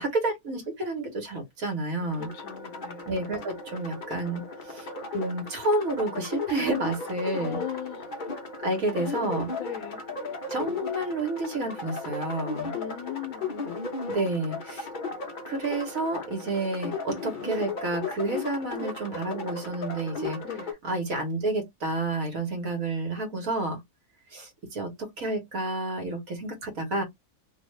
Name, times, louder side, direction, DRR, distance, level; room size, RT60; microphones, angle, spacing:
voice 1, 0.0-2.3 3.1-4.9 5.1-7.6 8.6-9.5 10.5-12.7 14.1-14.9 15.5-20.4 20.8-23.8 24.3-27.0, right 2 dB, 70° right, 1.7 m, -30 dB
sound 1, 2.1-20.7, left 3 dB, 40° left, 0.8 m, -36 dB
voice 2, 2.2-3.1 7.4-8.2 9.0-9.1 9.5-10.0 12.7-13.5 20.4-20.7, left 11 dB, 80° left, 1.1 m, -38 dB
3.1 x 2.5 x 3.2 m
omnidirectional pair, 1.5 m